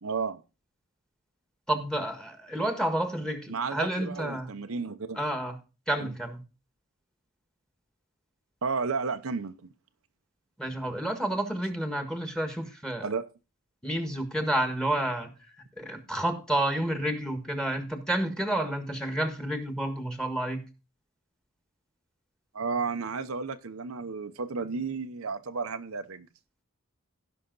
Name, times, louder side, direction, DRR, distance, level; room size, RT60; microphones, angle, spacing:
voice 1, 0.0-0.4 3.5-5.2 6.0-6.1 8.6-9.7 13.0-13.3 22.5-26.3, right 4 dB, 75° right, 8 dB, 0.8 m, -32 dB
voice 2, 1.7-4.5 5.1-5.6 5.9-6.4 10.6-13.1 13.8-15.3 15.8-20.6, right 1 dB, 5° left, 6 dB, 1.6 m, -30 dB
16.5 x 5.7 x 4.0 m, 0.31 s
head